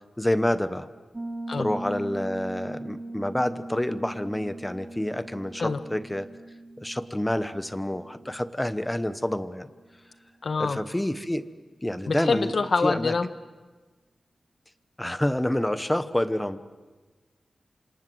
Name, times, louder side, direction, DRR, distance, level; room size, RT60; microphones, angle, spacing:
voice 1, 0.2-0.9 1.6-6.3 6.8-9.7 10.6-11.5 11.8-12.5 12.8-13.1 15.0-16.6, left 1 dB, 10° left, 13 dB, 1.0 m, -28 dB
Piano, 1.1-9.7, right 2 dB, 20° right, 1.3 m, -40 dB
voice 2, 10.4-10.8 12.1-13.3, left 4 dB, 60° left, 11 dB, 1.3 m, -25 dB
27.5 x 27.0 x 7.8 m, 1.3 s
wide cardioid pair, 120°, 0 cm